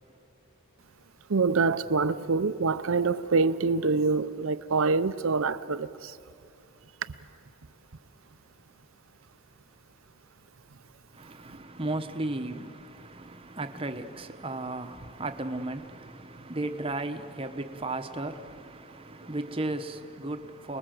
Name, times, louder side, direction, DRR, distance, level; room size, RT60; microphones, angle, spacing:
voice 1, 1.3-6.1, right 4 dB, 70° right, 0.6 m, -25 dB
voice 2, 11.1-20.8, right 2 dB, 25° right, 1.0 m, -35 dB
28.0 x 20.5 x 7.7 m
head